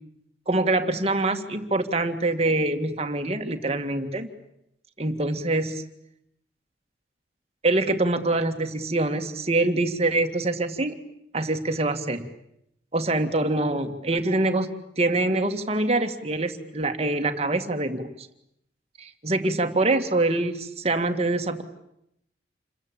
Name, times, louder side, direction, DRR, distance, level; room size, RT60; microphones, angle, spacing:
voice 1, 0.5-4.3 5.0-5.8 7.6-11.0 11.3-12.3 12.9-14.7 15.0-18.3 19.0-21.6, right 2 dB, 35° right, 7 dB, 2.1 m, -25 dB
28.5 x 22.0 x 8.9 m, 0.79 s
head